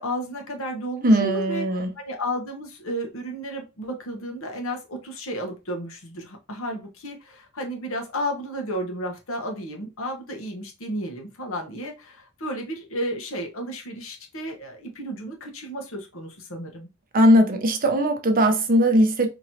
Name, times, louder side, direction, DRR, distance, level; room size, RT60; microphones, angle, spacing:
voice 1, 0.0-1.7 2.0-16.9, equal, 70° left, 1.0 m, -32 dB
voice 2, 1.0-1.9 17.1-19.3, equal, 40° right, 0.7 m, -19 dB
4.5 x 2.9 x 2.7 m
head